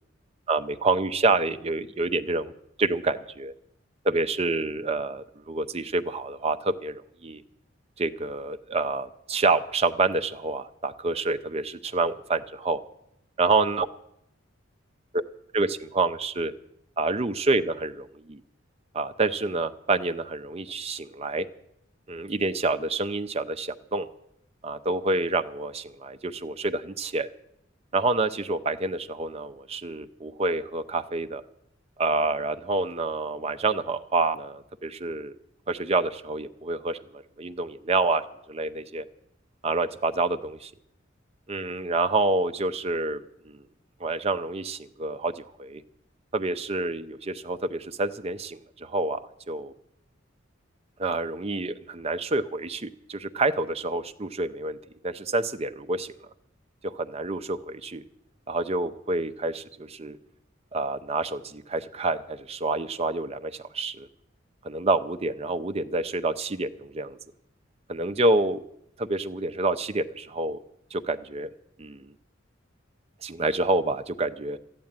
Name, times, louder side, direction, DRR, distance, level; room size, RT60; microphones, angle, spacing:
voice 1, 0.5-2.5 2.8-3.5 4.0-7.4 8.0-12.8 13.4-13.9 15.1-15.2 15.5-16.5 17.0-18.4 18.9-21.5 22.1-24.1 24.6-27.3 27.9-31.4 32.0-35.4 35.7-38.2 38.5-39.0 39.6-40.7 41.5-43.6 44.0-45.8 46.3-49.7 51.0-54.8 55.0-56.1 56.8-58.0 58.5-60.2 60.7-64.1 64.6-67.2 67.9-68.6 69.0-70.6 70.9-71.5 71.8-72.1 73.2-74.6, right 3 dB, 30° right, 10 dB, 0.6 m, -27 dB
13.0 x 9.5 x 8.9 m, 0.78 s
head